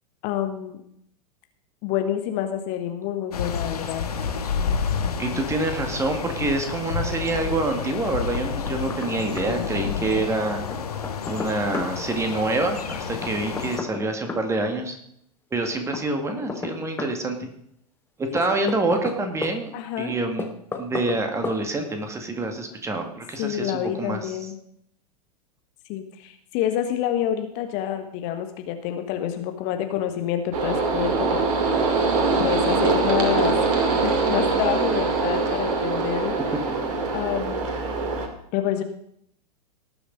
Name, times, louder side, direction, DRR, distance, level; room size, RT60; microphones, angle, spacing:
voice 1, 0.2-0.8 1.8-4.0 19.7-20.1 23.4-24.6 25.9-31.9 32.4-36.4 37.1-37.7 38.5-38.8, left 10 dB, 40° left, 6 dB, 1.4 m, -28 dB
sound 1, 3.3-13.8, left 6 dB, 70° left, 1.5 m, -29 dB
voice 2, 5.2-10.6 11.3-15.0 15.5-17.5 18.2-19.7 20.0-20.5 20.7-23.7 24.0-24.4, right 2 dB, 15° right, 5 dB, 2.0 m, -26 dB
Knock, 8.3-9.1 9.4-9.5 10.7-11.9 13.2-14.5 15.9-17.2 18.4-19.6 20.4-21.2 21.4-21.6, left 4 dB, 10° left, 1.4 m, -33 dB
sound 2, 30.5-38.3, right 4 dB, 50° right, 2.5 m, -23 dB
18.5 x 6.9 x 5.4 m, 0.71 s
figure-of-eight pair, 95°, 20 cm